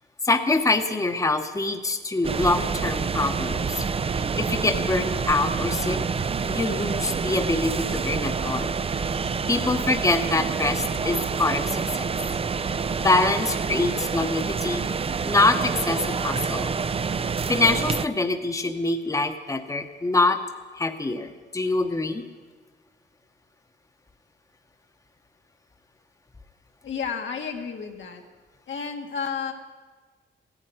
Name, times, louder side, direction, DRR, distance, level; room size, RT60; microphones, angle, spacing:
voice 1, 0.2-3.9 4.4-6.0 6.5-8.8 9.5-12.1 13.0-14.8 15.2-16.7 17.5-20.4 20.7-22.2, left 2 dB, 15° left, 7 dB, 0.9 m, -24 dB
sound 1, 2.2-18.1, right 5 dB, 30° right, 0.4 m, -27 dB
voice 2, 26.8-28.2 28.7-29.5, left 6 dB, 90° left, 2 dB, 1.8 m, -31 dB
16.0 x 9.9 x 9.2 m, 1.4 s
wide cardioid pair, 120°, 19 cm